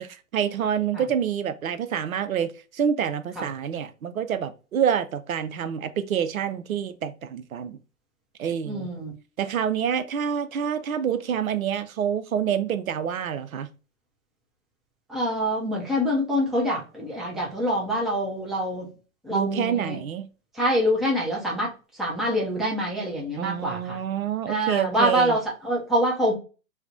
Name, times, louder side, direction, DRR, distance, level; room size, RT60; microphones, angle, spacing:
voice 1, 0.0-7.8 8.4-8.9 9.4-13.7 19.3-20.3 23.4-25.4, right 8 dB, 80° right, 0.5 m, -27 dB
voice 2, 8.7-9.1 15.1-18.9 19.2-20.0 20.5-24.0 24.5-26.3, equal, ahead, 0.5 m, -25 dB
3.2 x 2.0 x 3.8 m
figure-of-eight pair, 110°, 41 cm